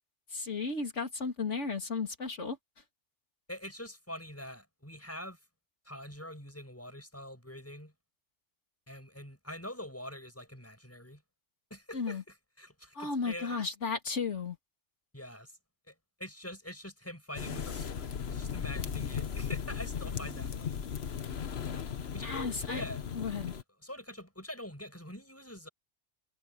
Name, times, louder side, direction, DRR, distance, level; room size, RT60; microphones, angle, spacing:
voice 1, 0.3-2.6 11.9-12.2 12.9-14.6 22.2-22.8 23.1-23.5, left 4 dB, 80° left, 2.9 m, -34 dB
voice 2, 3.5-5.4 5.8-7.9 8.9-11.2 11.7-13.6 15.1-15.6 15.9-16.0 16.2-20.9 22.1-23.0 23.5-25.7, left 1 dB, 10° left, 6.8 m, -45 dB
sound 1, 17.3-23.6, left 7 dB, 60° left, 1.2 m, -37 dB
omnidirectional pair, 1.2 m